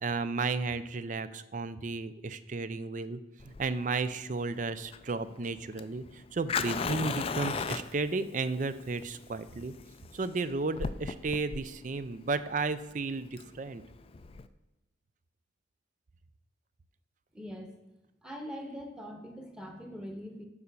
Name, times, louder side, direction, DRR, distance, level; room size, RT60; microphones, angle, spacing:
voice 1, 0.0-3.2 3.4-9.7 10.1-13.8, right 3 dB, 40° right, 13 dB, 0.4 m, -33 dB
Fire, 3.4-14.5, left 5 dB, 30° left, 0.3 m, -37 dB
voice 2, 17.3-17.7 18.2-20.4, equal, 5° right, 3 dB, 1.1 m, -42 dB
7.2 x 5.1 x 6.7 m, 0.99 s
head